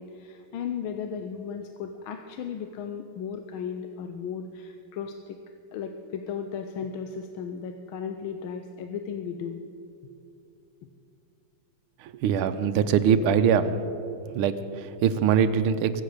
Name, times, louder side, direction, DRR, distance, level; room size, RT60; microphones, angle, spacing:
voice 1, 0.0-5.4 5.7-9.7, left 7 dB, 75° left, 6 dB, 1.5 m, -35 dB
voice 2, 12.0-13.8 14.3-16.0, right 7 dB, 80° right, 10 dB, 1.5 m, -23 dB
23.0 x 8.3 x 6.5 m, 2.7 s
omnidirectional pair, 2.3 m